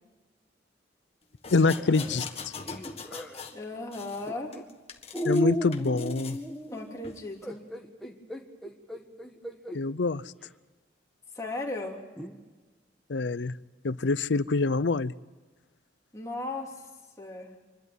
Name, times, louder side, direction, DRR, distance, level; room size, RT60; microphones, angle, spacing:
sound 1, 1.4-3.6 3.9-5.4 5.7-6.4 7.0-7.2, left 5 dB, 35° left, 1.7 m, -42 dB
voice 1, 1.5-2.3 5.2-6.4 9.7-10.2 13.1-13.6 13.8-15.1, left 3 dB, 90° left, 18 dB, 0.6 m, -25 dB
sound 2, 1.5-3.4 4.3-4.6 5.1-9.8 10.4-10.5 12.2-12.4, equal, ahead, 1.7 m, -34 dB
voice 2, 3.5-4.5 6.7-7.6 11.3-12.0 16.1-16.7 17.2-17.5, left 2 dB, 20° left, -1 dB, 3.0 m, -36 dB
25.5 x 12.5 x 9.2 m, 1.3 s
head